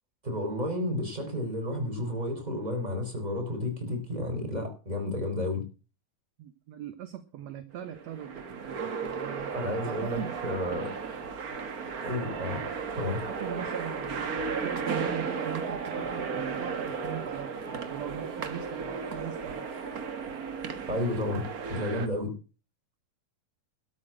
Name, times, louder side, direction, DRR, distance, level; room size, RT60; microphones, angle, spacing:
voice 1, 0.2-5.6 9.5-10.9 12.0-12.6 12.9-13.2 20.9-21.4 21.7-22.3, left 1 dB, 10° right, 4 dB, 4.0 m, -31 dB
voice 2, 6.4-9.6 9.9-10.4 13.3-19.7, right 11 dB, 65° right, 10 dB, 1.9 m, -40 dB
sound 1, 7.7-22.1, right 5 dB, 85° right, 0.8 m, -35 dB
12.5 x 6.5 x 8.8 m, 0.35 s
omnidirectional pair, 4.0 m